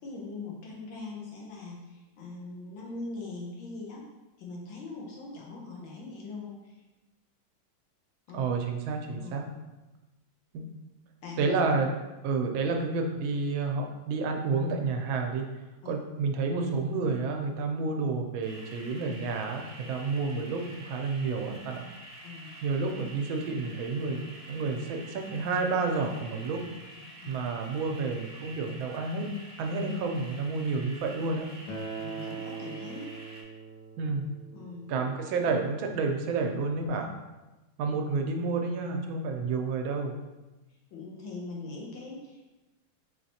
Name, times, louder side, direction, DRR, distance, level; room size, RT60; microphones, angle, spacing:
voice 1, 0.0-4.0 4.4-6.8 8.3-8.4 9.2-9.4 11.2-11.5 15.8-15.9 22.2-22.6 27.2-27.3 32.0-33.1 34.5-34.9 40.7-42.5, left 3 dB, 85° left, -3 dB, 1.6 m, -41 dB
voice 2, 8.3-9.4 10.5-10.6 11.4-11.9 12.2-15.5 15.9-21.9 22.6-26.6 27.3-29.3 29.6-31.5 34.0-34.3 34.9-37.1 37.8-40.2, right 4 dB, 80° right, 3 dB, 1.4 m, -30 dB
sound 1, 18.4-33.4, right 1 dB, 60° right, 1.0 m, -48 dB
Acoustic guitar, 31.7-36.9, right 5 dB, 65° left, 1.2 m, -42 dB
4.7 x 3.2 x 2.7 m, 1.1 s
omnidirectional pair, 2.2 m